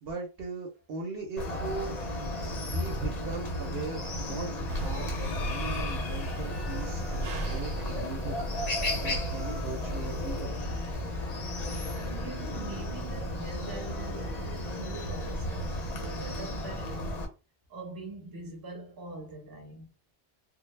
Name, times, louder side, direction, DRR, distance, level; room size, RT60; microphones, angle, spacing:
voice 1, 0.0-2.0 2.6-4.5 4.8-8.4 9.0-10.5, right 3 dB, 65° right, 0.8 m, -38 dB
Chicken rooster, 1.4-17.3, left 1 dB, 45° left, 0.6 m, -34 dB
sound 1, 4.7-10.5, right 1 dB, 85° right, 1.0 m, -37 dB
voice 2, 11.9-17.1 17.7-19.9, right 2 dB, 20° right, 0.7 m, -43 dB
2.1 x 2.0 x 3.1 m
omnidirectional pair, 1.2 m